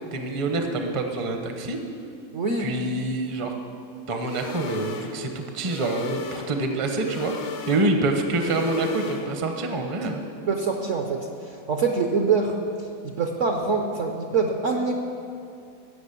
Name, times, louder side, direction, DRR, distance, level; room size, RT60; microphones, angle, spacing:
voice 1, 0.0-1.8 2.6-3.5 4.1-7.3 7.7-10.2, right 2 dB, 30° right, 4 dB, 0.6 m, -26 dB
voice 2, 2.3-2.7 7.7-7.9 10.0-10.1 10.5-12.6 13.0-14.9, right 4 dB, 55° right, 2 dB, 0.8 m, -25 dB
sound 1, 4.2-9.6, left 6 dB, 70° left, 1.6 m, -38 dB
14.5 x 6.0 x 8.3 m, 2.5 s
omnidirectional pair, 2.1 m